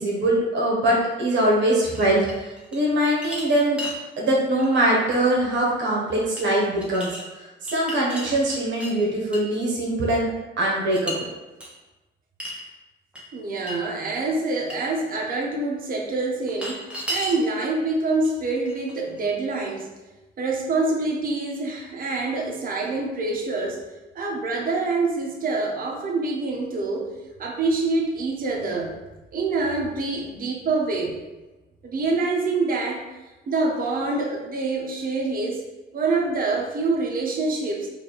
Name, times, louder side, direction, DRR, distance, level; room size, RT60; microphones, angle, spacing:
voice 1, 0.0-2.5 2.7-3.8 4.2-7.1 7.7-10.3 10.6-11.2, right 1 dB, 65° right, -3 dB, 1.0 m, -22 dB
sound 1, 1.9-2.8 3.2-4.0 4.6-4.8 6.4-6.5 6.8-7.2 7.6-8.9 9.3-9.6 10.9-11.2 11.6-11.7 12.4-12.6 13.1-13.2 13.7-13.8 14.1-14.2 14.7-14.8 16.5-17.4 18.2-18.3 18.7-19.2, equal, 5° right, 1.0 m, -34 dB
voice 2, 13.3-19.9 20.4-23.8 24.1-27.1 27.4-29.0 29.3-31.2 31.8-33.0 33.5-35.6 35.9-37.9, right 3 dB, 45° right, -1 dB, 0.7 m, -26 dB
3.3 x 2.5 x 3.9 m, 1.1 s
cardioid pair, 90°, 20 cm